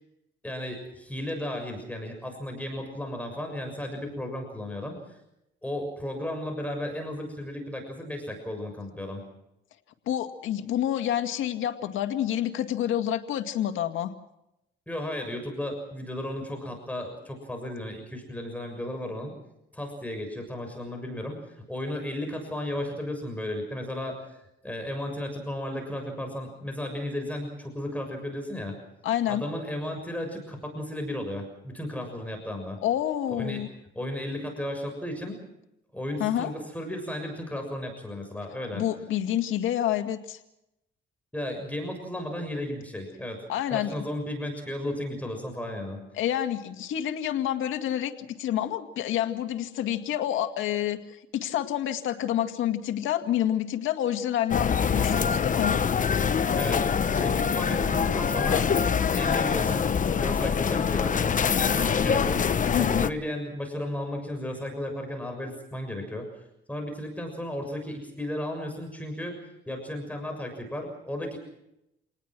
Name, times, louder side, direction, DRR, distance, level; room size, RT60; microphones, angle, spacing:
voice 1, 0.4-5.2 5.6-9.2 14.9-19.3 19.7-24.4 24.6-28.7 29.3-32.8 33.3-33.6 33.9-35.4 35.9-38.8 41.3-43.4 43.7-46.0 56.6-58.7 59.2-62.4 62.8-66.3 66.7-71.4, left 1 dB, 5° left, 3 dB, 6.7 m, -34 dB
voice 2, 10.1-14.1 29.0-29.4 32.8-33.7 36.2-36.5 38.7-40.4 43.5-43.9 46.1-55.8 62.7-62.9, left 11 dB, 85° left, 7 dB, 2.0 m, -28 dB
sound 1, 54.5-63.1, left 6 dB, 40° left, 1.1 m, -24 dB
28.5 x 19.5 x 6.1 m, 0.85 s
cardioid pair, 90°, 20 cm